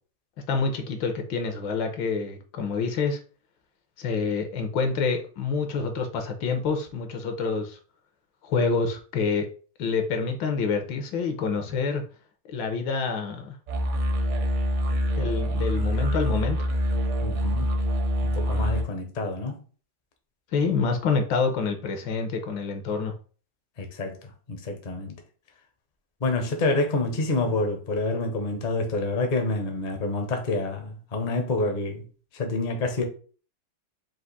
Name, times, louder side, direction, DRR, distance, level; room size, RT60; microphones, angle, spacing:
voice 1, 0.5-3.2 4.0-7.8 8.4-9.5 9.8-12.0 12.5-13.5 15.2-16.6 20.5-23.1, left 4 dB, 80° left, 1.5 m, -27 dB
sound 1, 13.7-18.8, equal, 55° right, 0.8 m, -25 dB
voice 2, 17.2-17.7 18.2-19.6 23.8-25.2 26.2-32.0 32.3-33.0, left 2 dB, 50° left, 0.5 m, -28 dB
4.8 x 2.5 x 4.0 m
omnidirectional pair, 2.1 m